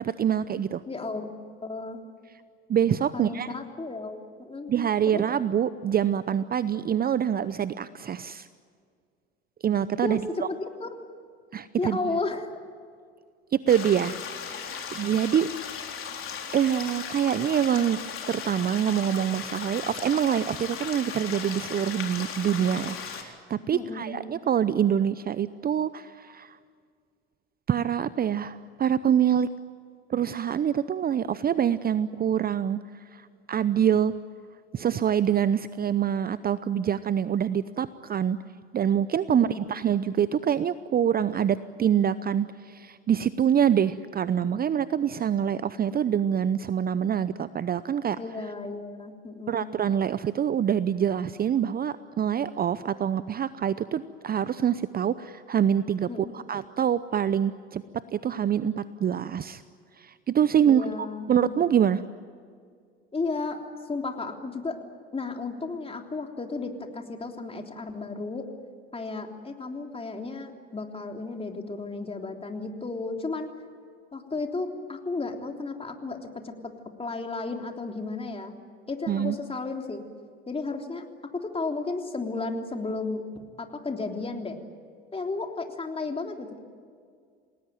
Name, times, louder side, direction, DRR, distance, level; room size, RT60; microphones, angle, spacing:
voice 1, 0.0-0.8 2.7-3.5 4.7-8.5 9.6-10.5 11.5-12.2 13.5-15.5 16.5-18.0 18.3-26.6 27.7-29.5 30.1-32.8 33.1-34.1 34.7-38.4 38.7-48.2 49.5-57.8 58.1-59.6 60.0-60.9 61.3-62.0 79.1-79.4, right 9 dB, 30° right, 15 dB, 0.7 m, -25 dB
voice 2, 0.9-2.0 3.1-4.7 5.1-5.2 10.0-10.2 10.5-11.0 11.8-12.5 23.7-24.2 39.3-39.6 48.2-49.7 56.1-56.5 60.6-61.6 63.1-64.8 65.1-68.5 68.9-73.5 74.1-76.7 77.0-78.6 78.9-80.0 80.5-81.0 81.3-83.2 83.6-84.6 85.1-86.6, left 3 dB, 20° left, 3 dB, 3.4 m, -33 dB
sound 1, 13.7-23.2, left 7 dB, 45° left, 4.1 m, -37 dB
28.5 x 19.0 x 9.4 m, 2.1 s
hypercardioid pair, 70°, 31 cm